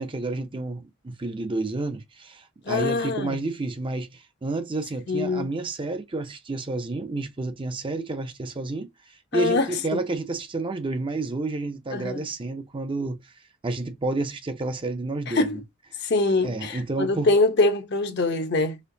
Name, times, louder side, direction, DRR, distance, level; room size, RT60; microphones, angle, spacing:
voice 1, 0.0-8.9 9.3-13.3 13.6-15.5 16.4-17.3, right 2 dB, 25° right, 0.5 m, -30 dB
voice 2, 2.6-3.4 5.1-5.6 9.3-9.8 11.9-12.2 15.3-15.6 16.0-18.8, left 3 dB, 55° left, 0.7 m, -24 dB
4.4 x 2.9 x 2.6 m
head